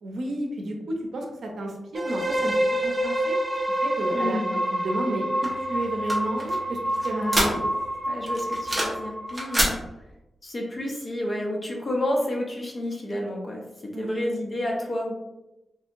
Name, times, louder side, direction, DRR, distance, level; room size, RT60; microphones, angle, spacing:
voice 1, 0.0-2.5 2.8-3.4 3.8-4.4 4.7-7.7 13.9-14.3, right 1 dB, 75° right, 1 dB, 0.6 m, -32 dB
sound 1, 1.9-9.7, right 1 dB, 25° right, 0.4 m, -28 dB
voice 2, 4.1-4.5 7.1-7.7 8.1-9.7 10.4-13.6 14.0-15.1, left 1 dB, 30° left, -1 dB, 0.7 m, -30 dB
sound 2, 5.4-7.9 8.3-9.0 9.3-9.8, equal, 10° right, 1.0 m, -27 dB
3.1 x 2.7 x 2.5 m, 0.95 s
wide cardioid pair, 125°, 0 cm